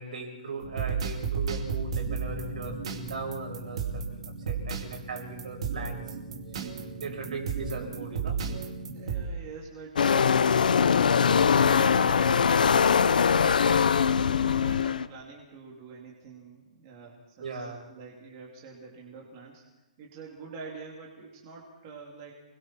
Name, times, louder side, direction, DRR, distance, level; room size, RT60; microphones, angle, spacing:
voice 1, 0.0-6.0 7.0-8.4 17.4-17.9, right 4 dB, 65° right, 2 dB, 6.4 m, -38 dB
sound 1, 0.6-9.2, right 5 dB, 45° right, 2.6 m, -34 dB
voice 2, 8.9-11.5 11.8-19.6 20.0-22.3, right 4 dB, 20° right, -3 dB, 2.8 m, -46 dB
sound 2, 10.0-15.1, left 6 dB, 70° left, 0.9 m, -22 dB
30.0 x 21.5 x 4.4 m, 1.0 s
hypercardioid pair, 180°, 5 cm